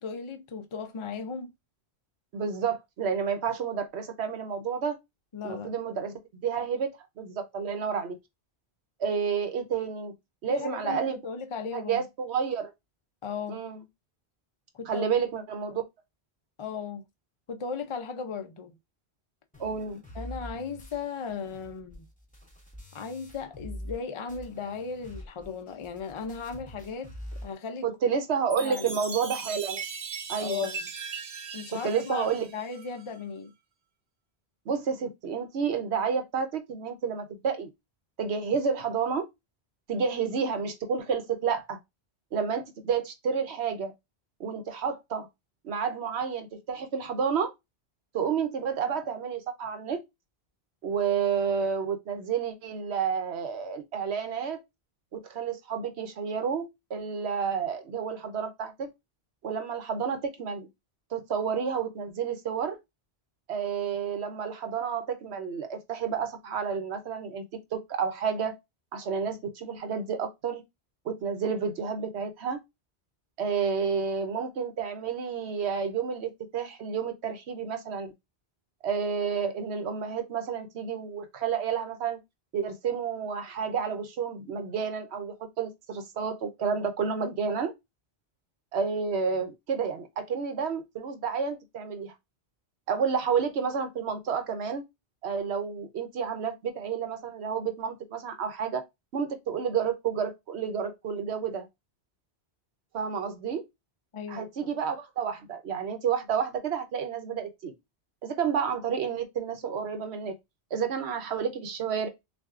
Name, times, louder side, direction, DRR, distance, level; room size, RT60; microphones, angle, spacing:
voice 1, 0.0-1.5 5.3-5.7 10.5-12.0 13.2-13.6 14.7-15.1 16.6-17.1 17.5-18.8 20.1-22.1 22.9-27.1 27.4-27.9 28.6-29.0 30.4-30.8 31.5-33.5 104.1-104.7, left 6 dB, 45° left, 0.4 m, -36 dB
voice 2, 2.3-5.0 5.4-6.1 6.4-6.9 7.2-8.2 9.0-10.1 10.4-11.2 11.7-12.7 13.5-13.8 14.9-15.8 19.6-20.0 27.8-29.8 30.3-30.7 31.8-32.5 34.7-37.7 38.2-39.3 39.9-41.8 42.3-43.9 44.4-45.3 45.6-47.5 48.1-50.0 50.8-54.6 55.1-58.9 59.4-60.7 61.1-62.8 63.5-67.4 67.7-68.6 68.9-70.6 71.0-72.6 73.4-78.1 78.8-82.2 82.5-87.7 88.7-92.1 92.9-94.8 95.2-98.8 99.1-101.7 102.9-103.6 104.3-107.7 108.2-110.3 110.7-112.1, right 6 dB, 85° right, 1.1 m, -30 dB
sound 1, 19.5-24.0 24.3-27.5, left 1 dB, 10° left, 0.9 m, -44 dB
Chime, 28.5-33.1, right 5 dB, 50° right, 0.7 m, -39 dB
5.9 x 2.3 x 2.4 m
omnidirectional pair, 1.1 m